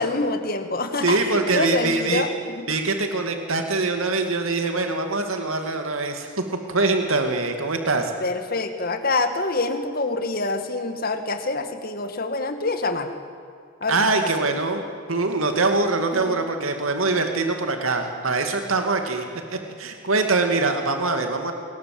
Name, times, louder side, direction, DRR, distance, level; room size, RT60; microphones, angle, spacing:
voice 1, 0.0-2.3 2.6-2.7 8.2-13.1 13.8-14.5 16.1-16.4, left 3 dB, 45° left, 7 dB, 2.2 m, -26 dB
voice 2, 1.0-2.3 2.7-6.3 6.7-8.1 13.9-14.8 15.1-19.2 19.5-21.5, right 3 dB, 85° right, 5 dB, 2.5 m, -23 dB
28.5 x 21.0 x 7.9 m, 2.3 s
head